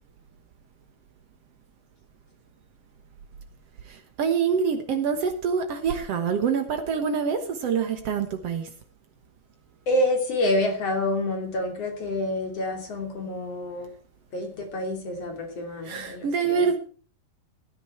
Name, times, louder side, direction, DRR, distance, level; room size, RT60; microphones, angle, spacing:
voice 1, 3.9-8.7 15.8-16.8, right 6 dB, 65° right, 7 dB, 1.6 m, -26 dB
voice 2, 9.9-13.9 14.3-16.8, left 1 dB, 40° left, 3 dB, 3.6 m, -28 dB
17.0 x 9.8 x 4.4 m, 0.41 s
omnidirectional pair, 4.6 m